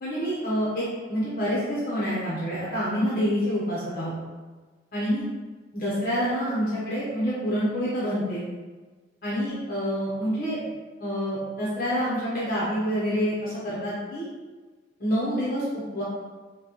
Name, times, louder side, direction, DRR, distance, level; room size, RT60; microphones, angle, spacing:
voice 1, 0.0-4.1 4.9-5.3 5.7-8.4 9.2-10.6 11.0-14.3 15.0-15.6 15.9-16.0, equal, 55° left, -8 dB, 0.9 m, -27 dB
5.9 x 2.3 x 3.0 m, 1.3 s
head